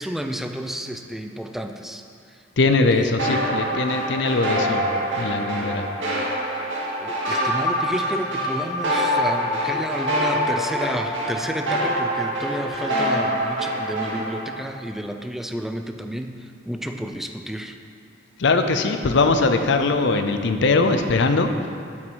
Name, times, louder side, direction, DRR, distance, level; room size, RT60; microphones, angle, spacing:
voice 1, 0.0-2.4 2.9-3.2 7.0-17.8, equal, ahead, 5 dB, 0.4 m, -31 dB
voice 2, 2.6-4.9 5.2-5.8 18.4-21.5, left 3 dB, 70° left, 7 dB, 0.6 m, -21 dB
sound 1, 3.2-14.5, equal, 85° right, 2.0 m, -25 dB
8.3 x 7.6 x 4.7 m, 2.3 s
head